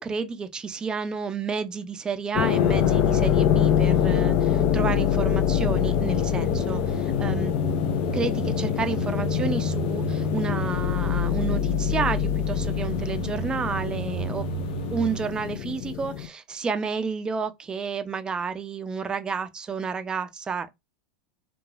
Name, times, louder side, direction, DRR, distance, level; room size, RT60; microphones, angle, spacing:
voice 1, 0.0-7.5 8.1-14.5 14.9-20.7, right 5 dB, 20° right, 0.4 m, -31 dB
sound 1, 2.3-16.3, left 11 dB, 50° left, 0.4 m, -25 dB
sound 2, 2.5-15.2, left 2 dB, 70° left, 1.1 m, -30 dB
2.9 x 2.3 x 2.3 m
hypercardioid pair, 90°, 4 cm